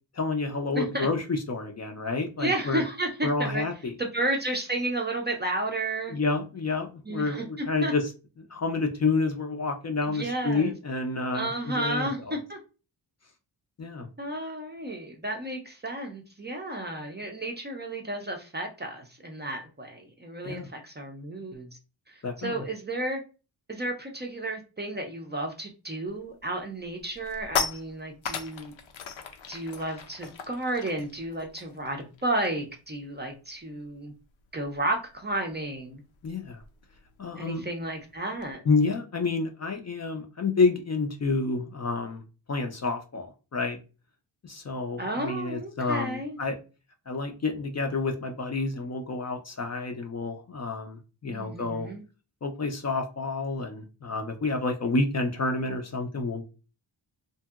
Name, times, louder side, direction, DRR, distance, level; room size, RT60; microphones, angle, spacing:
voice 1, 0.1-2.8 3.2-3.9 6.1-8.0 8.5-12.4 13.8-14.1 20.4-20.7 22.2-22.6 36.2-36.6 37.2-37.6 38.7-42.2 42.5-43.8 44.4-46.6 47.1-51.9 52.4-56.4, left 3 dB, 35° left, 5 dB, 0.4 m, -29 dB
voice 2, 0.7-1.1 2.4-3.6 4.0-6.2 7.1-7.9 10.1-10.7 11.3-12.6 14.2-21.7 22.1-23.2 23.7-28.7 29.5-34.1 34.5-36.0 37.4-38.6 45.0-46.4 51.3-52.0, right 1 dB, 25° right, 2 dB, 0.4 m, -32 dB
sound 1, 26.2-26.4 26.8-32.7 33.0-33.2 33.5-38.5, left 6 dB, 85° left, 0.6 m, -38 dB
2.8 x 2.6 x 2.3 m, 0.33 s
wide cardioid pair, 135°, 46 cm